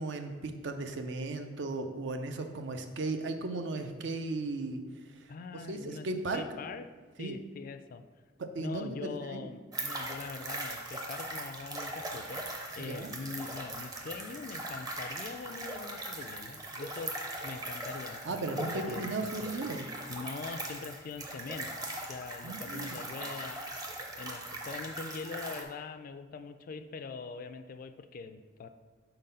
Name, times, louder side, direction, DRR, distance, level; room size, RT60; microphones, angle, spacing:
voice 1, 0.0-4.8 5.1-6.6 7.2-7.4 8.4-9.5 12.8-13.1 18.2-19.9 22.4-23.1, right 2 dB, 70° right, 7 dB, 0.5 m, -36 dB
voice 2, 5.3-6.1 6.3-6.9 7.2-8.0 8.6-17.2 17.4-19.5 20.1-21.7 22.1-23.6 24.2-28.7, left 4 dB, 50° left, 9 dB, 0.3 m, -43 dB
sound 1, 9.7-25.6, right 1 dB, 20° right, 0.6 m, -40 dB
4.5 x 3.9 x 5.4 m, 1.4 s
head